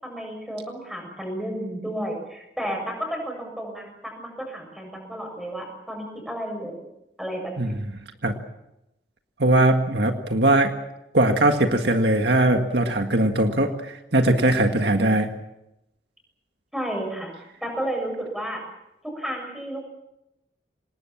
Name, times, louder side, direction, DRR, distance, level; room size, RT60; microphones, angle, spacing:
voice 1, 0.0-6.9 7.2-7.7 16.7-17.3 17.6-18.6 19.0-19.9, right 1 dB, ahead, 1 dB, 7.0 m, -32 dB
voice 2, 9.4-10.7 11.1-15.3, right 1 dB, 65° right, 5 dB, 1.8 m, -20 dB
27.0 x 19.5 x 7.3 m, 0.89 s
head